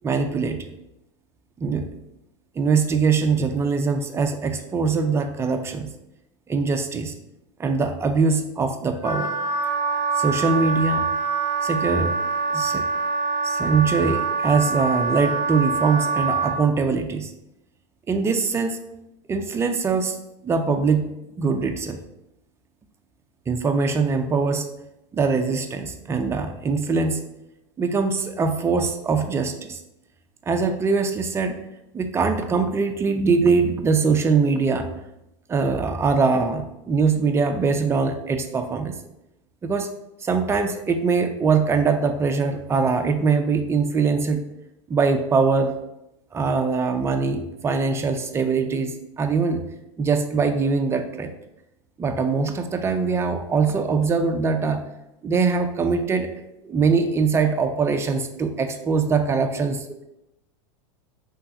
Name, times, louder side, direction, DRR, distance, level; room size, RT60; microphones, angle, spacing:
voice 1, 0.0-0.7 1.6-1.8 2.6-5.9 6.5-7.1 7.6-9.3 10.2-11.1 11.6-12.1 12.5-12.8 13.4-17.3 18.1-18.8 19.3-22.0 23.5-24.7 25.1-27.2 27.8-29.8 30.5-31.7 31.9-34.9 35.5-38.9 39.6-39.9 40.2-44.4 44.9-45.7 46.3-49.6 50.0-51.3 52.0-54.8 55.2-56.3 56.6-59.9, right 4 dB, 15° right, 6 dB, 0.4 m, -22 dB
Wind instrument woodwind instrument, 9.0-16.6, right 4 dB, 30° left, 0.9 m, -25 dB
5.5 x 3.2 x 2.7 m, 0.89 s
supercardioid pair, 125°, 16 cm